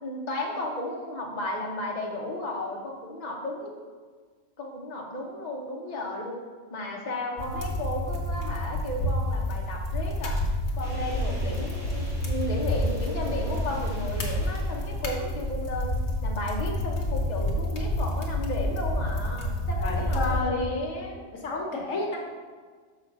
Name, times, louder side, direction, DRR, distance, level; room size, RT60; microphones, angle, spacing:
voice 1, 0.0-3.8 4.6-6.4 6.7-10.4 10.8-21.2, left 1 dB, 35° left, -1 dB, 1.1 m, -34 dB
sound 1, 7.4-20.4, left 1 dB, 60° left, 1.3 m, -29 dB
sound 2, 10.8-15.5, equal, 85° right, 2.5 m, -46 dB
voice 2, 19.8-20.8 21.3-22.2, left 3 dB, 90° left, 0 dB, 1.6 m, -30 dB
6.2 x 4.3 x 6.0 m, 1.5 s
omnidirectional pair, 1.3 m